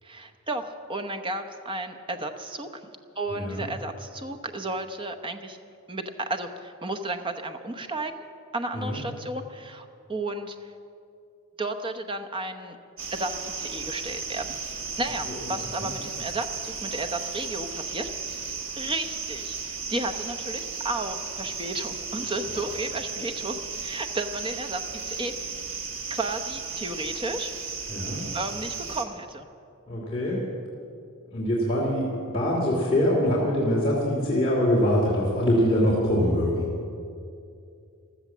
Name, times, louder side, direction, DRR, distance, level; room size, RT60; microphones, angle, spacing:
voice 1, 0.0-2.7 3.2-5.6 5.9-8.2 8.5-10.7 11.6-12.8 13.1-14.6 15.0-18.4 18.8-25.5 26.1-27.5 28.3-29.5, right 2 dB, 20° right, 6 dB, 0.9 m, -33 dB
voice 2, 3.3-3.6 8.7-9.0 15.3-15.4 15.8-15.9 27.9-28.2 29.9-30.4 31.3-36.7, equal, 25° left, -6 dB, 2.6 m, -24 dB
sound 1, 13.0-29.1, right 5 dB, 60° right, 1.4 m, -35 dB
15.0 x 12.5 x 7.3 m, 2.5 s
head